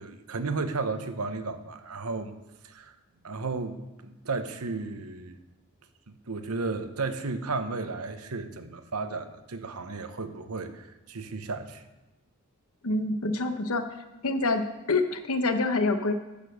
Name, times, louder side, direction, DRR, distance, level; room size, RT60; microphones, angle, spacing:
voice 1, 0.0-2.3 2.6-2.9 3.2-5.4 6.1-11.8, right 3 dB, 80° right, 9 dB, 0.9 m, -34 dB
voice 2, 12.8-13.8 14.2-14.6 14.9-16.1, left 3 dB, 75° left, 8 dB, 1.0 m, -26 dB
10.5 x 6.8 x 6.5 m, 1.0 s
head